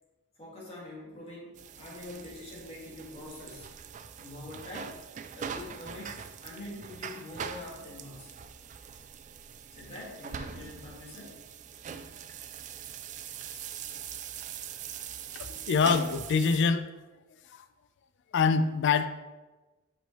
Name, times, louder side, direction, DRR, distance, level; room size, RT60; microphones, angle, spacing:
voice 1, 0.4-3.7 4.2-5.0 5.3-8.3 9.7-11.4, left 1 dB, 30° left, -5 dB, 1.8 m, -44 dB
sound 1, 1.6-16.6, right 7 dB, 35° right, 0.3 m, -42 dB
voice 2, 15.4-16.9 17.5-17.6 18.3-19.1, left 5 dB, 55° left, 10 dB, 0.4 m, -25 dB
6.3 x 5.4 x 3.0 m, 1.2 s
head